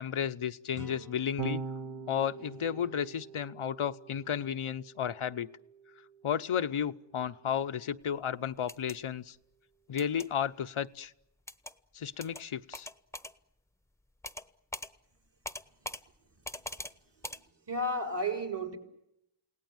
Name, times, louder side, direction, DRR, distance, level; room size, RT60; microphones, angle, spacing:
voice 1, 0.0-1.6 2.1-5.5 6.2-9.4 9.9-11.1 11.9-12.9, left 8 dB, 85° left, 0.9 m, -33 dB
sound 1, 0.7-4.5, right 4 dB, 40° right, 1.5 m, -54 dB
Electric guitar / Bass guitar, 1.4-7.8, right 4 dB, 75° right, 1.9 m, -44 dB
sound 2, 8.6-9.0 10.0-10.3 11.5-11.7 12.2-12.4 12.7-13.3 14.2-14.5 14.7-14.9 15.4-16.0 16.4-16.9 17.2-17.4, left 1 dB, 5° left, 0.9 m, -41 dB
voice 2, 16.3-16.8 17.2-17.4 17.7-18.8, right 1 dB, 55° right, 4.1 m, -34 dB
29.5 x 18.0 x 9.1 m
wide cardioid pair, 90°, 48 cm